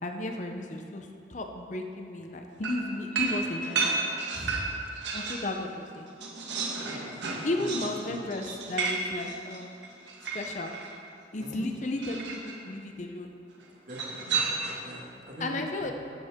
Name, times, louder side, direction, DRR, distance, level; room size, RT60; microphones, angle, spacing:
voice 1, 0.0-3.8 5.1-6.1 7.4-9.8 10.3-10.7 11.3-13.3 15.4-15.9, left 2 dB, 40° left, 4 dB, 0.6 m, -34 dB
sound 1, 2.6-5.5 5.9-10.9 12.0-12.6 13.9-15.0, right 4 dB, 75° right, 1.3 m, -32 dB
voice 2, 4.3-4.7 6.8-7.1 7.6-7.7 8.0-8.1 11.4-11.7 13.9-14.5 14.8-15.9, equal, 45° right, -2 dB, 1.5 m, -41 dB
13.0 x 7.3 x 3.6 m, 2.5 s
head